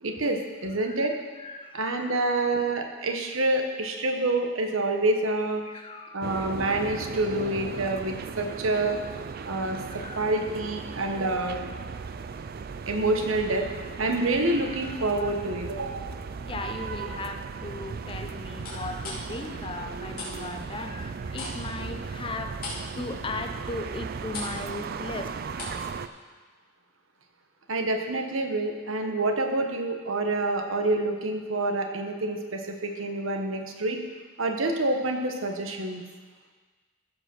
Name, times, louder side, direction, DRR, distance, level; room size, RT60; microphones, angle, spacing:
voice 1, 0.0-1.2 1.7-5.6 6.1-9.0 9.5-11.7 12.9-13.7 14.0-16.1 27.7-34.0 34.4-36.0, right 2 dB, 90° right, 4 dB, 1.2 m, -27 dB
voice 2, 0.8-1.1 1.4-2.3 5.6-6.4 9.5-10.3 11.0-11.1 12.0-12.1 14.5-15.3 16.5-25.3, left 2 dB, 25° left, 6 dB, 0.6 m, -38 dB
sound 1, 6.2-26.1, right 5 dB, 50° right, 0.4 m, -37 dB
sound 2, 14.2-15.9 16.4-16.8 18.6-20.4 20.6-25.9 26.1-26.3, left 3 dB, 45° left, 3.0 m, -41 dB
15.0 x 5.1 x 6.1 m, 1.4 s
head